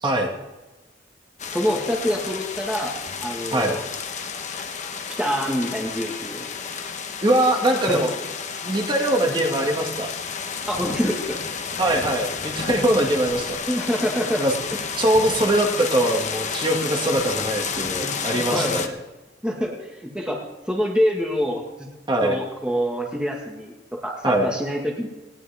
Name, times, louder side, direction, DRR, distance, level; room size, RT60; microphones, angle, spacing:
sound 1, 1.4-18.9, left 5 dB, 40° left, 1.2 m, -31 dB
voice 1, 1.5-3.0 3.2-3.9 5.2-6.7 7.9-8.1 10.7-11.4 13.7-14.5 17.7-18.2 18.5-18.8 19.4-20.4 20.7-21.9 22.2-25.1, equal, 5° right, -1 dB, 1.8 m, -26 dB
voice 2, 7.2-8.1 8.6-10.1 11.8-13.6 14.3-14.5 15.0-18.9 22.1-22.4 24.2-24.5, right 1 dB, 25° right, 1 dB, 2.2 m, -22 dB
19.5 x 18.5 x 3.6 m, 1.1 s
head